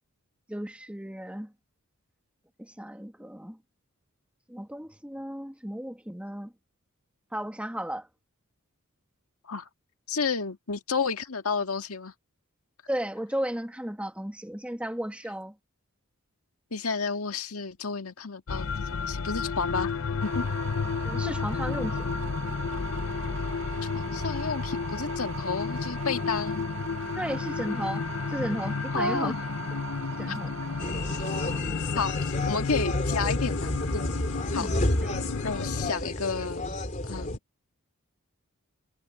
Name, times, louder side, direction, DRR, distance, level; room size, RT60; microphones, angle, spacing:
voice 1, 0.5-1.5 2.6-3.6 4.5-6.5 7.3-8.1 12.9-15.6 21.0-22.1 27.2-29.3 30.2-30.5 34.6-35.3, equal, 5° right, 1.7 m, -34 dB
voice 2, 10.1-12.1 16.7-19.9 20.2-20.5 23.8-26.7 28.9-29.4 30.3-30.4 31.9-34.1 34.5-34.7 35.4-36.6 37.0-37.4, left 4 dB, 80° left, 1.8 m, -31 dB
sound 1, 18.5-35.9, left 5 dB, 65° left, 0.6 m, -32 dB
sound 2, 20.2-31.6, right 8 dB, 60° right, 1.6 m, -41 dB
sound 3, 30.8-37.4, left 1 dB, 35° left, 3.5 m, -31 dB
head